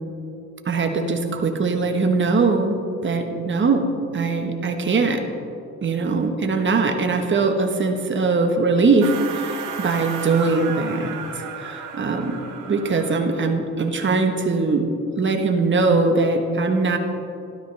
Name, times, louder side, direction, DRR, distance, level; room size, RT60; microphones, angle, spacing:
voice 1, 0.6-5.2 5.8-12.4 12.7-14.9 15.2-17.0, right 3 dB, 40° right, 5 dB, 1.3 m, -21 dB
sound 1, 9.0-13.5, right 6 dB, 85° right, 1.3 m, -34 dB
13.5 x 12.0 x 3.4 m, 2.7 s
cardioid pair, 90°, 30 cm